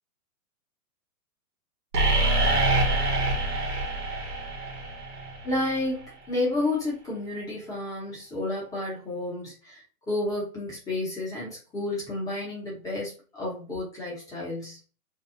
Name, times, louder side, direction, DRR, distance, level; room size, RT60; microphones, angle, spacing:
sound 1, 1.9-5.8, right 2 dB, 90° right, 1.1 m, -25 dB
voice 1, 5.4-14.8, left 2 dB, 5° left, -6 dB, 0.9 m, -31 dB
2.7 x 2.3 x 2.6 m, 0.37 s
hypercardioid pair, 140°, 46 cm